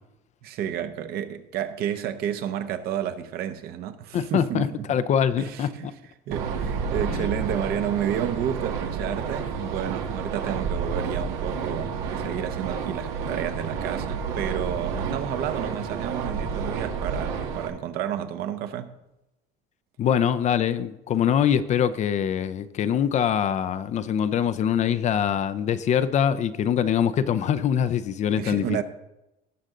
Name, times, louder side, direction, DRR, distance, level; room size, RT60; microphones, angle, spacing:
voice 1, 0.4-5.0 5.4-5.9 6.3-19.0 28.4-28.8, right 10 dB, 55° right, 0.9 m, -31 dB
voice 2, 4.1-5.9 7.1-7.3 20.0-28.8, left 9 dB, 40° left, 0.5 m, -24 dB
sound 1, 6.3-17.7, right 6 dB, 90° right, 1.7 m, -30 dB
18.0 x 6.3 x 3.8 m
cardioid pair, 130°, 19 cm